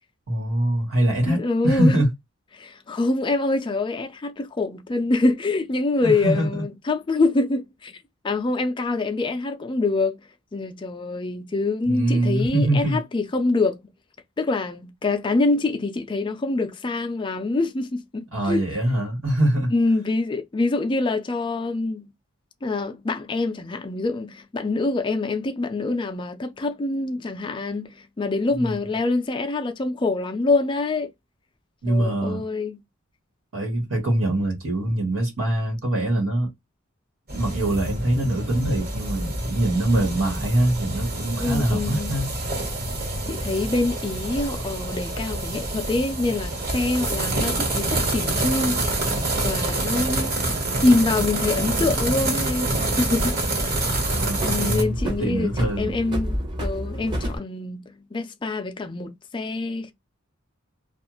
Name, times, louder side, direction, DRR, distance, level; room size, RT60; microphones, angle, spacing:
voice 1, 0.3-2.1 6.0-6.6 11.9-13.0 18.3-19.7 28.5-28.8 31.8-32.4 33.5-36.5 37.3-42.3 54.1-56.0, right 1 dB, 75° right, 1.3 m, -23 dB
voice 2, 1.3-2.0 2.5-8.0 8.2-13.9 14.4-18.6 19.7-22.1 22.6-31.1 31.9-32.8 41.4-42.2 43.3-48.8 49.4-50.4 50.8-53.8 54.4-59.9, left 3 dB, 25° left, 0.4 m, -25 dB
sound 1, 37.3-54.8, right 2 dB, 45° right, 1.3 m, -27 dB
sound 2, 48.5-49.6 51.8-52.8 53.2-57.4, equal, 25° right, 0.8 m, -31 dB
2.4 x 2.4 x 3.0 m
head